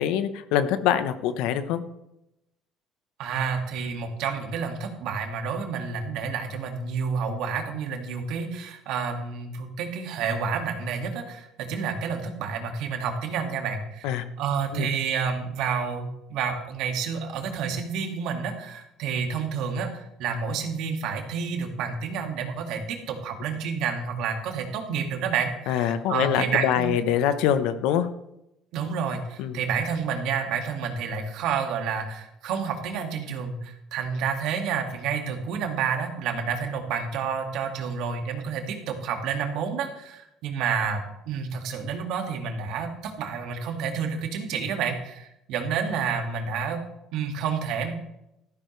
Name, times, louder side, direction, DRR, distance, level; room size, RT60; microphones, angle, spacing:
voice 1, 0.0-1.8 14.0-14.2 14.7-14.9 25.7-28.1 29.4-29.6, left 9 dB, 80° left, 11 dB, 1.0 m, -24 dB
voice 2, 3.2-26.9 28.7-46.8 47.1-47.9, right 6 dB, 70° right, 4 dB, 2.1 m, -29 dB
13.5 x 13.0 x 3.3 m, 0.85 s
cardioid pair, 105°, 0 cm